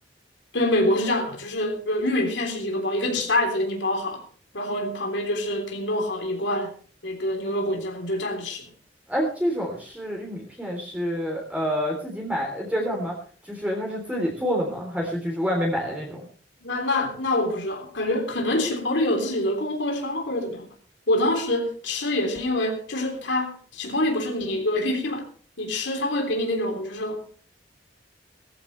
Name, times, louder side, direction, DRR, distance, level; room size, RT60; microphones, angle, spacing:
voice 1, 0.5-4.2 4.5-6.7 7.0-8.6 16.6-20.7 21.1-25.3 25.6-27.2, left 1 dB, 85° left, 3 dB, 3.5 m, -26 dB
voice 2, 9.1-13.2 13.4-16.2, equal, 10° right, -1 dB, 3.3 m, -27 dB
18.5 x 14.0 x 3.3 m, 0.42 s
head